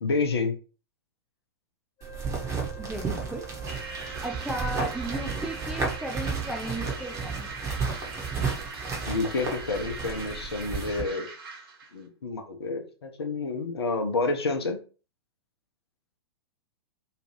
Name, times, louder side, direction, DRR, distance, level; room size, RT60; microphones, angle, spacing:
voice 1, 0.0-0.6 9.1-11.3 11.9-14.8, left 3 dB, 70° left, 4 dB, 0.8 m, -29 dB
Wind instrument woodwind instrument, 2.0-6.4, right 7 dB, 30° left, 0.9 m, -46 dB
sound 1, 2.0-11.0, right 4 dB, 20° right, 1.0 m, -33 dB
voice 2, 2.8-3.5 4.2-7.5, right 1 dB, 5° right, 2 dB, 0.3 m, -35 dB
sound 2, 3.7-11.9, right 4 dB, 60° right, 0.8 m, -41 dB
3.0 x 2.4 x 2.9 m, 0.35 s
figure-of-eight pair, 105°, 14 cm